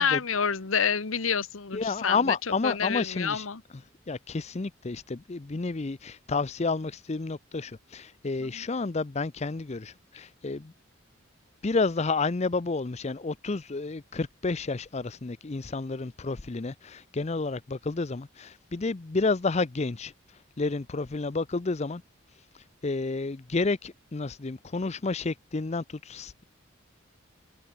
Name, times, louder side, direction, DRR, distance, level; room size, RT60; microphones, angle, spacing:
voice 1, 0.0-2.3 2.6-3.6 8.4-8.6, left 6 dB, 85° left, 1.3 m, -28 dB
voice 2, 1.7-3.5 4.1-10.7 11.6-20.1 20.6-22.0 22.5-26.4, left 3 dB, 35° left, 0.6 m, -30 dB
head